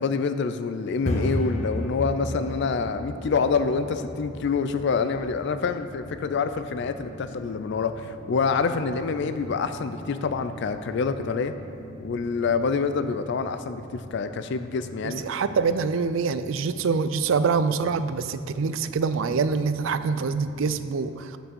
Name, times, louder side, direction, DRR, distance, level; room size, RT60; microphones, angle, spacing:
voice 1, 0.0-11.5 12.0-15.2, left 5 dB, 60° left, 10 dB, 0.4 m, -26 dB
sound 1, 0.8-20.7, equal, 35° left, 0.9 m, -38 dB
voice 2, 15.0-21.4, right 5 dB, 70° right, 12 dB, 0.4 m, -25 dB
6.9 x 6.1 x 6.9 m, 2.9 s
head